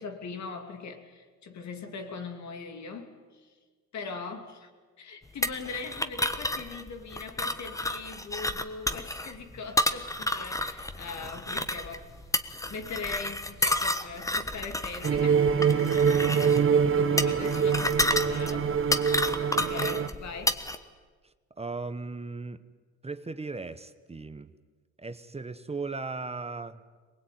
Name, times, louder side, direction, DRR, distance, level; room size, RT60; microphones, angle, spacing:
voice 1, 0.0-3.5 3.9-4.7 5.0-12.0 12.7-15.5 16.6-18.7 19.1-20.6, left 4 dB, 65° left, 5 dB, 2.8 m, -41 dB
sound 1, 5.4-20.8, left 1 dB, 10° left, 1.3 m, -31 dB
sound 2, 11.0-19.0, equal, 85° left, 7.4 m, -50 dB
sound 3, 15.0-20.1, right 6 dB, 45° right, 1.3 m, -24 dB
voice 2, 16.8-17.6 19.5-20.1 21.6-22.6 23.0-24.5 25.0-26.8, right 3 dB, 20° right, 11 dB, 1.0 m, -38 dB
22.5 x 20.0 x 9.3 m, 1.5 s
cardioid pair, 90°, 30 cm